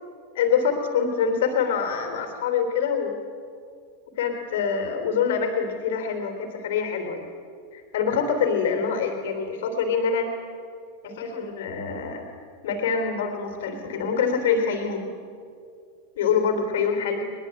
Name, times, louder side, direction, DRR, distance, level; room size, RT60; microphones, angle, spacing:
voice 1, 0.4-3.2 4.2-7.3 7.7-10.3 11.0-12.3 12.6-15.1 16.2-17.2, left 6 dB, 65° left, 5 dB, 3.5 m, -25 dB
21.5 x 21.5 x 8.9 m, 2.3 s
hypercardioid pair, 90°, 0 cm